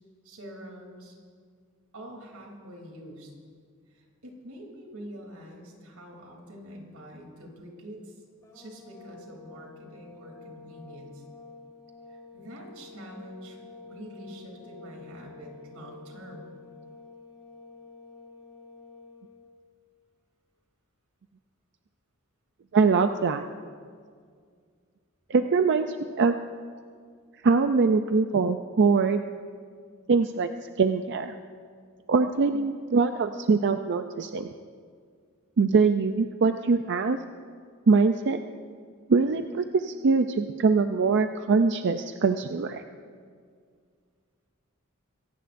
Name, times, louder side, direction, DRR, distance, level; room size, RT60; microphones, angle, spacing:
voice 1, 0.2-1.1 1.9-3.3 3.9-8.2 8.5-11.2 12.1-13.6 13.8-16.5, equal, 85° right, 1 dB, 3.2 m, -45 dB
sound 1, 8.4-19.5, left 3 dB, 15° left, 3.5 m, -49 dB
voice 2, 22.7-23.4 25.3-26.4 27.4-29.2 30.1-30.5 30.8-31.3 32.1-34.5 35.6-37.2 37.9-38.4 39.1-42.8, right 4 dB, 55° right, 7 dB, 0.5 m, -23 dB
24.0 x 17.0 x 2.6 m, 2.1 s
head